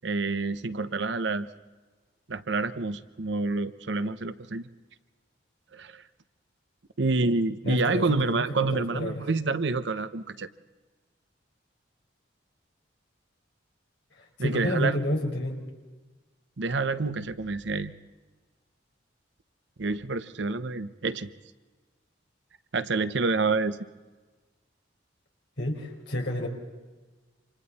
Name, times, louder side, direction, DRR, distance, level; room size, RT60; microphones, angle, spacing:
voice 1, 0.0-1.5 2.3-4.7 5.7-6.0 7.0-10.5 14.4-15.0 16.6-17.9 19.8-21.3 22.7-23.8, right 3 dB, 65° right, 12 dB, 0.8 m, -28 dB
voice 2, 7.6-9.2 14.2-15.6 25.6-26.5, left 1 dB, 60° left, 1 dB, 4.6 m, -30 dB
28.0 x 26.5 x 4.2 m, 1.3 s
head